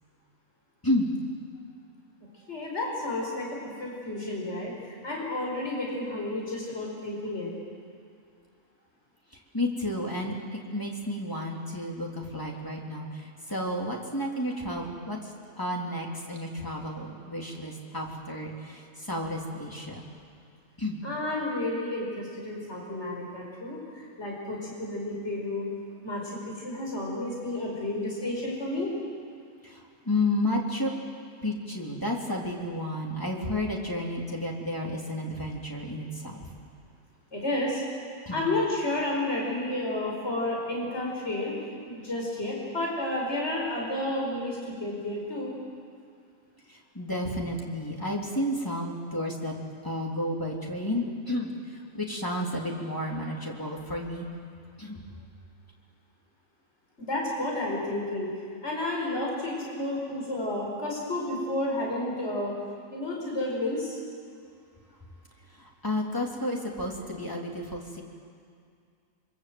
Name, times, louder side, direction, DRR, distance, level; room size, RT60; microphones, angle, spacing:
voice 1, 2.5-7.5 21.0-25.7 26.0-28.9 37.3-37.8 38.3-41.6 41.9-45.5 57.0-58.3 58.6-62.6 62.9-64.0, left 1 dB, 55° left, -2 dB, 5.4 m, -31 dB
voice 2, 9.5-15.2 15.6-20.0 20.8-21.0 29.6-30.9 31.4-36.5 38.2-38.4 46.7-49.5 49.8-51.5 51.9-54.3 54.8-55.0 65.6-68.0, left 1 dB, 15° left, -1 dB, 3.3 m, -31 dB
26.5 x 24.0 x 7.9 m, 2.3 s
omnidirectional pair, 1.4 m